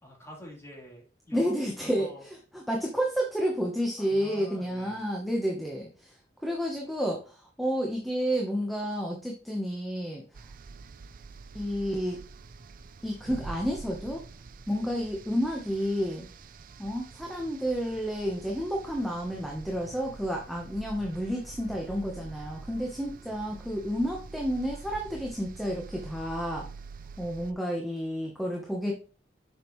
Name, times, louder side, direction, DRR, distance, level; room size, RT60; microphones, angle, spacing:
voice 1, 0.0-2.2 4.0-5.0 14.7-14.8, equal, 15° left, -4 dB, 3.5 m, -47 dB
voice 2, 1.3-6.2 6.4-10.2 11.5-12.2 13.0-14.2 14.7-16.3 16.8-26.7 27.2-28.9, equal, ahead, -1 dB, 1.0 m, -30 dB
sound 1, 10.3-27.5, right 4 dB, 50° right, 0.5 m, -46 dB
7.4 x 5.4 x 3.1 m, 0.36 s
head